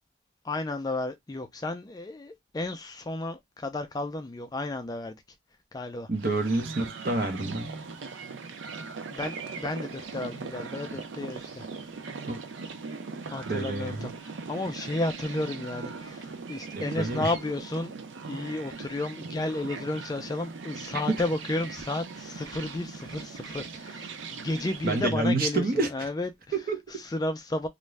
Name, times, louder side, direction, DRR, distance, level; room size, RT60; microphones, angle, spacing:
voice 1, 0.4-5.2 5.7-6.1 9.1-11.7 13.3-17.9 18.3-26.6 26.9-27.7, left 2 dB, 20° left, 0.3 m, -33 dB
voice 2, 6.1-7.7 12.3-12.4 13.5-14.1 16.7-17.3 21.1-21.2 24.8-26.1 26.5-26.8, right 2 dB, 50° right, 0.8 m, -28 dB
sound 1, 6.1-25.1, right 4 dB, 80° right, 0.5 m, -40 dB
2.5 x 2.2 x 3.2 m
head